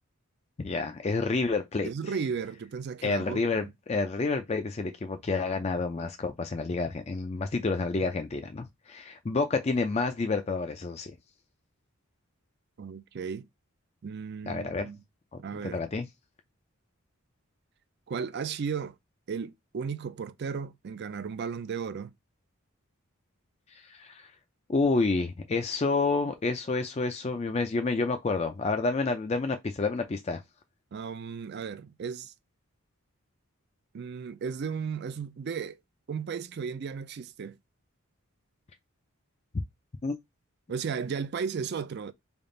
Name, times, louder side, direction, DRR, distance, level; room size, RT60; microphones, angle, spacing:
voice 1, 0.6-1.9 3.0-11.2 14.5-14.9 15.6-16.1 23.8-24.3 24.7-30.4 40.0-40.2, left 3 dB, 30° left, 0.4 m, -29 dB
voice 2, 1.8-3.7 12.8-13.5 14.0-15.0 15.4-15.8 18.1-18.9 19.3-22.1 30.9-32.3 33.9-35.8 36.1-37.6 40.7-42.1, right 6 dB, 50° right, 0.4 m, -35 dB
3.5 x 2.4 x 3.7 m
head